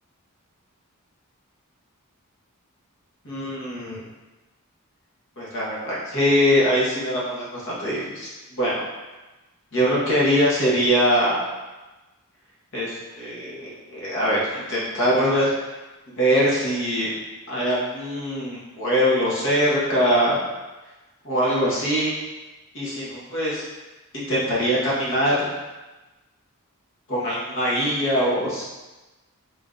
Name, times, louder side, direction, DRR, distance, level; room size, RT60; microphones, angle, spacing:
voice 1, 3.2-4.0 5.4-8.8 9.7-11.3 12.7-15.5 16.1-17.1 17.5-20.4 21.2-22.1 22.7-23.6 24.1-25.4 27.1-28.7, equal, 60° left, -7 dB, 1.2 m, -22 dB
3.7 x 2.5 x 3.8 m, 1.1 s
head